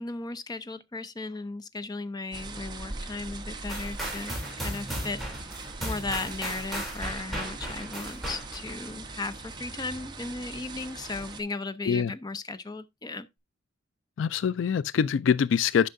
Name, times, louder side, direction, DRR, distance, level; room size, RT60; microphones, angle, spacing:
voice 1, 0.0-5.4 5.8-13.3, left 3 dB, 20° left, 0.5 m, -36 dB
sound 1, 2.3-11.4, right 3 dB, 25° right, 1.0 m, -41 dB
sound 2, 3.7-8.8, equal, ahead, 3.0 m, -36 dB
voice 2, 14.2-15.9, left 7 dB, 70° left, 0.3 m, -24 dB
11.5 x 5.5 x 2.5 m
head